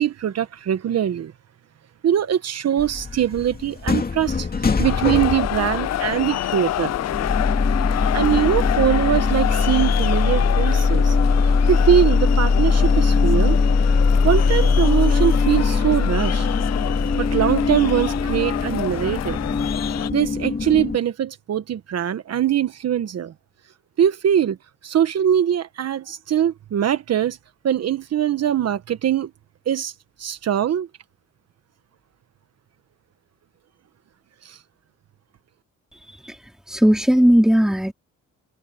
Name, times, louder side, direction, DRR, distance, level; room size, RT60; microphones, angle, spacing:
voice 1, 0.0-1.3 2.0-6.9 7.9-11.2 11.7-13.6 14.2-16.5 17.1-19.4 20.1-23.3 24.0-24.6 24.8-27.4 27.6-29.3 29.7-29.9 30.2-30.9 34.4-34.6, right 10 dB, 55° right, 1.3 m, -22 dB
sound 1, 2.8-21.0, left 4 dB, 30° left, 2.3 m, -21 dB
sound 2, 4.8-20.1, left 13 dB, 60° left, 0.6 m, -28 dB
voice 2, 36.7-37.9, equal, ahead, 2.5 m, -16 dB
cardioid pair, 90°, 30 cm